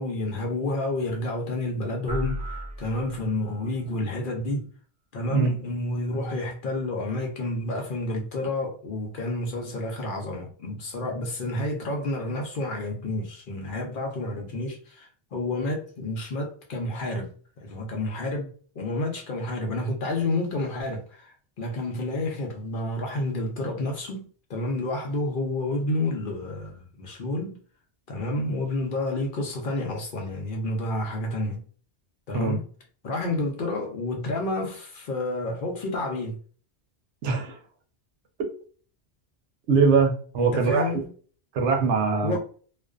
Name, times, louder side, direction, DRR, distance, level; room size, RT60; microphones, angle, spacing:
voice 1, 0.0-4.7 5.1-17.3 17.6-27.6 28.1-31.6 32.3-32.6 33.0-36.4 40.4-41.1 42.2-42.4, left 2 dB, 55° left, 0.7 m, -30 dB
sound 1, 2.1-3.6, right 1 dB, 10° right, 0.4 m, -35 dB
voice 2, 37.2-37.6 39.7-40.9 41.5-42.4, right 4 dB, 85° right, 1.0 m, -22 dB
2.5 x 2.2 x 2.3 m
omnidirectional pair, 1.2 m